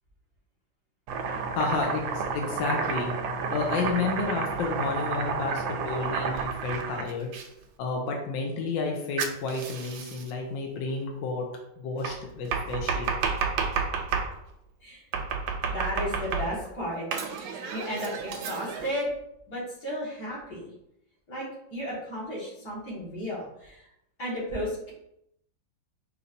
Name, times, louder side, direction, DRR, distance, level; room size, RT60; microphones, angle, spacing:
Domestic sounds home sounds, 1.1-7.5 9.2-10.3 12.0-14.3 15.1-16.7 17.1-18.9, right 5 dB, 90° right, 1.4 m, -31 dB
voice 1, 1.6-3.1 3.5-7.3 7.8-11.5 11.8-13.2, left 4 dB, 75° left, 1 dB, 1.3 m, -31 dB
voice 2, 15.7-19.1 19.5-20.7 21.3-23.9 24.2-24.9, equal, 55° left, -7 dB, 2.3 m, -34 dB
5.3 x 3.2 x 2.6 m, 0.80 s
omnidirectional pair, 2.1 m